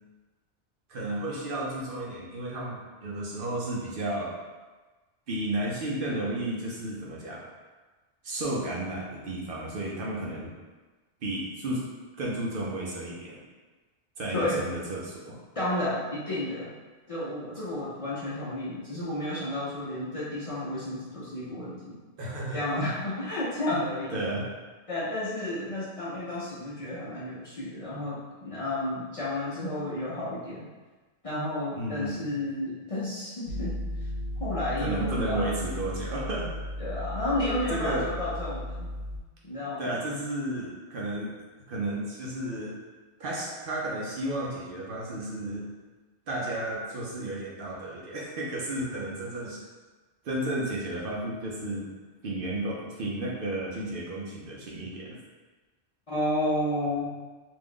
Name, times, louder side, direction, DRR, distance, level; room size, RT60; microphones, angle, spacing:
voice 1, 0.9-4.4 5.3-7.5 8.2-10.5 11.2-11.8 12.2-13.4 14.2-15.4 22.2-22.6 24.1-24.5 31.8-32.3 34.8-36.5 37.7-38.1 39.8-41.4 41.7-42.7 43.2-45.7 46.3-49.6 50.2-51.9 52.2-55.2, right 1 dB, 60° right, -4 dB, 0.7 m, -33 dB
voice 2, 14.3-14.6 15.5-16.7 17.1-22.0 22.5-24.2 24.9-30.7 31.2-33.7 34.4-35.5 36.8-38.9 39.4-39.9 56.1-57.1, left 1 dB, 40° left, -10 dB, 0.5 m, -31 dB
sound 1, 33.5-39.2, left 1 dB, 85° left, 0.9 m, -35 dB
2.6 x 2.3 x 3.5 m, 1.3 s
omnidirectional pair, 1.1 m